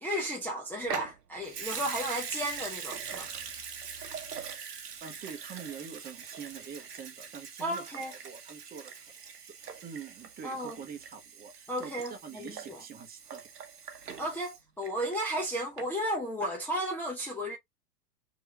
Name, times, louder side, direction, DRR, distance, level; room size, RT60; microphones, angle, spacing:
voice 1, 0.0-3.3 7.6-8.1 10.4-10.8 11.7-12.8 14.2-17.6, right 1 dB, 5° left, 0.8 m, -34 dB
Water tap faucet / Sink (filling or washing) / Liquid, 0.8-15.5 15.8-15.9, right 7 dB, 70° right, 1.1 m, -42 dB
voice 2, 5.0-9.1 9.8-13.5, right 7 dB, 20° right, 1.1 m, -45 dB
4.7 x 2.8 x 2.8 m
figure-of-eight pair, 90°, 48 cm